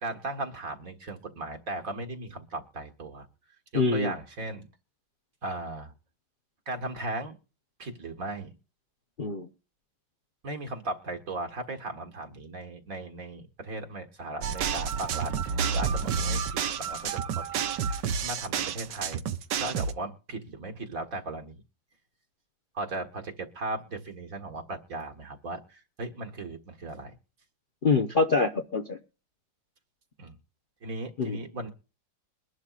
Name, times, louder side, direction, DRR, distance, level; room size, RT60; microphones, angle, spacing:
voice 1, 0.0-3.3 3.7-4.7 5.4-5.9 6.7-7.3 7.8-8.5 10.4-19.3 19.6-21.6 22.7-27.1 30.2-30.4 30.8-31.7, right 2 dB, 50° right, 4 dB, 1.9 m, -37 dB
voice 2, 3.7-4.1 9.2-9.5 27.8-29.0 31.2-31.4, left 4 dB, 40° left, 4 dB, 0.8 m, -25 dB
sound 1, 14.4-19.9, right 6 dB, 70° right, 1.5 m, -30 dB
22.5 x 11.5 x 2.5 m, 0.34 s
omnidirectional pair, 2.0 m